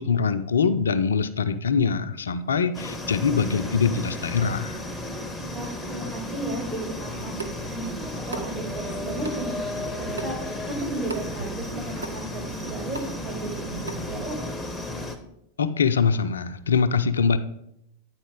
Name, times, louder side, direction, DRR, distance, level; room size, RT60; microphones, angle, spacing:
voice 1, 0.0-4.8 15.6-17.4, left 5 dB, 70° left, 10 dB, 0.4 m, -23 dB
sound 1, 2.7-15.2, left 1 dB, 5° left, 0.8 m, -34 dB
voice 2, 5.5-10.4 10.7-14.5, right 2 dB, 40° right, -3 dB, 3.3 m, -34 dB
Water tap faucet / Sink (filling or washing) / Drip, 7.1-14.3, right 3 dB, 75° right, 0.7 m, -40 dB
9.0 x 4.3 x 4.7 m, 0.79 s
figure-of-eight pair, 90°, 0 cm